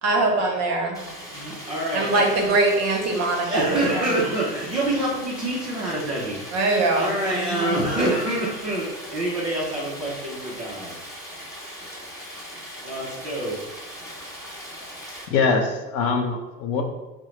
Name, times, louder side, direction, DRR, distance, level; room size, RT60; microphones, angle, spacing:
voice 1, 0.0-1.0 1.9-4.1 6.5-7.8, right 2 dB, 35° right, 1 dB, 0.8 m, -23 dB
Stream, 0.9-15.3, equal, 5° left, 0.8 m, -39 dB
voice 2, 1.2-2.2 3.2-11.0 12.8-13.6, right 1 dB, 15° right, -6 dB, 0.3 m, -27 dB
voice 3, 15.3-16.8, left 4 dB, 45° left, 3 dB, 0.6 m, -23 dB
4.4 x 2.0 x 3.1 m, 1.1 s
hypercardioid pair, 95°, 48 cm